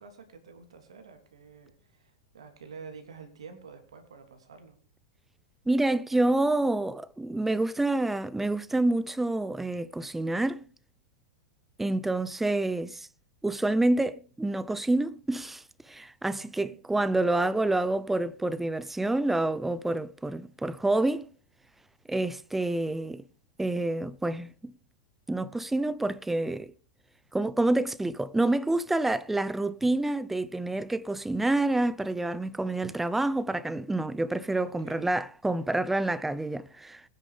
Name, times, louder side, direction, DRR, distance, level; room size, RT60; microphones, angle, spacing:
voice 1, 0.0-4.8 16.4-16.8 34.6-35.0, right 5 dB, 80° right, 3.2 m, -48 dB
voice 2, 5.7-10.6 11.8-13.1 13.4-21.3 22.1-23.2 23.6-24.7 25.3-26.7 27.3-37.0, right 2 dB, 5° right, 0.6 m, -28 dB
21.5 x 10.0 x 3.3 m
hypercardioid pair, 100°, 3 cm